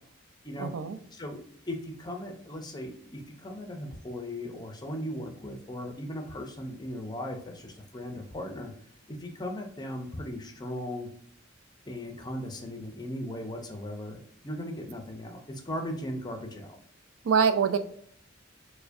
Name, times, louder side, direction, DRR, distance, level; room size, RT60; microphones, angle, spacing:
voice 1, 0.6-1.0 17.2-17.8, right 6 dB, 85° right, 10 dB, 0.4 m, -24 dB
voice 2, 1.1-8.7 9.1-11.1 11.9-14.2 14.4-16.8, left 1 dB, 20° left, 3 dB, 0.5 m, -37 dB
4.6 x 2.1 x 2.6 m, 0.63 s
head